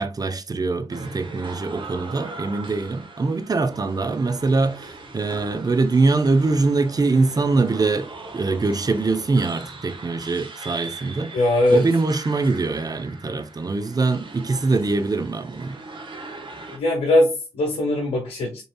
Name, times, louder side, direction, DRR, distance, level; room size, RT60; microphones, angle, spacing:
voice 1, 0.0-8.1 8.3-11.3 11.7-15.8, right 3 dB, 40° right, 0.7 m, -23 dB
sound 1, 0.9-16.8, right 3 dB, 55° right, 1.2 m, -40 dB
voice 2, 11.3-11.8 16.7-18.6, left 1 dB, 85° left, 1.1 m, -20 dB
5.3 x 3.1 x 2.3 m
cardioid pair, 55°, 10 cm